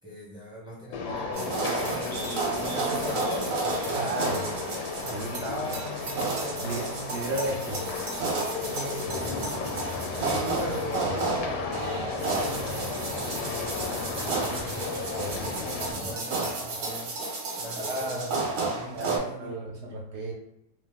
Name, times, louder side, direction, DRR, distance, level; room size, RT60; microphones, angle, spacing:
voice 1, 0.0-4.5 5.0-7.1 8.6-9.7 10.2-15.6 15.9-17.1 17.6-20.0, equal, 5° right, -7 dB, 0.3 m, -40 dB
sound 1, 0.9-15.9, left 5 dB, 80° left, 1.2 m, -35 dB
sound 2, 1.3-19.2, right 3 dB, 60° right, 1.1 m, -32 dB
voice 2, 3.9-4.4 5.1-5.4 6.6-6.8 7.1-7.8 15.2-15.4 17.9-18.3 18.9-20.3, right 2 dB, 90° right, -2 dB, 0.6 m, -33 dB
sound 3, 9.1-16.1, left 2 dB, 60° left, 0.5 m, -39 dB
2.8 x 2.0 x 3.4 m, 0.79 s
omnidirectional pair, 1.8 m